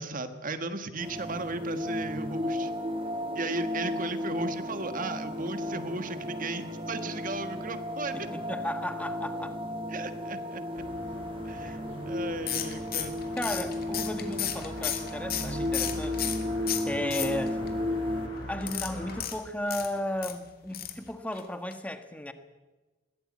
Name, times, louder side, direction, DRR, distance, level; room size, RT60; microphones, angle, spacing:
voice 1, 0.0-2.7 3.3-8.3 9.9-10.8 11.4-11.8 12.0-13.2, right 3 dB, 45° right, 9 dB, 1.5 m, -36 dB
sound 1, 1.0-18.3, left 1 dB, 30° right, 2.5 m, -34 dB
voice 2, 8.1-9.6 11.6-11.8 13.3-16.4 16.8-17.6 18.5-22.3, left 1 dB, 10° left, 8 dB, 1.5 m, -35 dB
sound 2, 10.7-19.2, equal, 70° left, 6.9 m, -43 dB
sound 3, 12.5-16.4 16.7-17.7 18.6-20.3 20.7-21.0 21.3-21.4 21.7-21.8, left 10 dB, 55° left, 2.1 m, -33 dB
21.5 x 16.5 x 8.6 m, 1.2 s
head